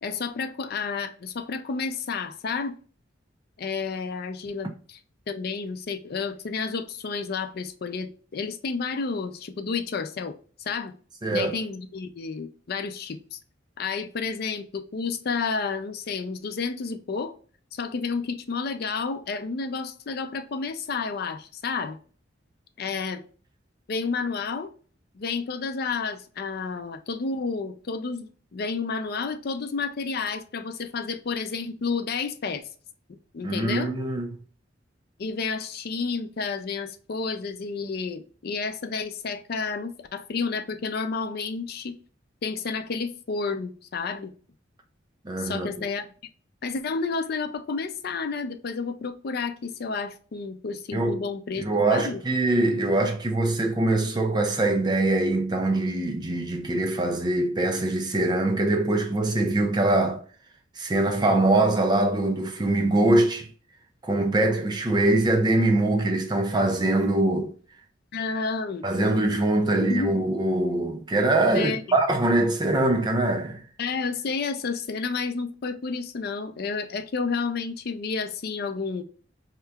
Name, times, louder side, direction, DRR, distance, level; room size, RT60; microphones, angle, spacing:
voice 1, 0.0-2.8 3.6-5.0 5.3-10.9 11.3-13.4 13.8-17.3 17.7-22.0 22.8-23.2 23.9-24.7 25.1-32.7 33.3-33.9 35.2-42.0 42.4-44.3 45.4-46.1 46.6-52.2 68.1-69.1 69.7-70.2 71.5-71.8 73.8-79.0, left 4 dB, 55° left, 0.4 m, -31 dB
voice 2, 11.2-11.5 33.4-34.3 45.2-45.7 50.9-51.2 51.6-60.2 60.8-63.5 64.0-67.5 68.8-73.6, right 2 dB, 25° right, 0.5 m, -23 dB
4.5 x 2.8 x 2.2 m
head